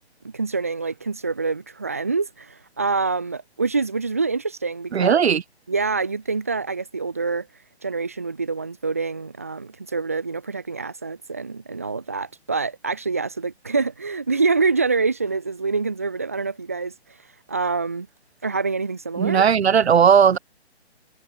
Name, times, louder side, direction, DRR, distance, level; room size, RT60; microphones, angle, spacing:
voice 1, 0.2-5.2 5.7-7.5 7.8-16.9 17.5-18.1 18.4-19.5, right 4 dB, 15° right, 0.4 m, -26 dB
voice 2, 4.9-5.4 19.2-20.4, right 7 dB, 70° right, 0.5 m, -16 dB
figure-of-eight pair, 140°, 33 cm